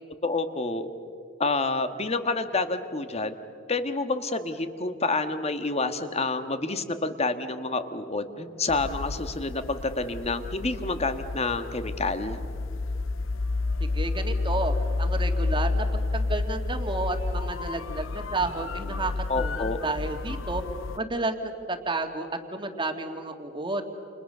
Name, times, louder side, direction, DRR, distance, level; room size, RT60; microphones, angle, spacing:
voice 1, 0.2-0.9 1.4-3.3 3.7-12.4 19.3-19.8, left 3 dB, 35° left, 9 dB, 1.5 m, -28 dB
sound 1, 8.7-21.0, left 3 dB, 85° left, 0.6 m, -30 dB
voice 2, 13.8-15.9 16.1-20.6 21.0-23.8, right 2 dB, 25° right, 6 dB, 2.2 m, -31 dB
29.5 x 29.5 x 6.8 m, 2.7 s
head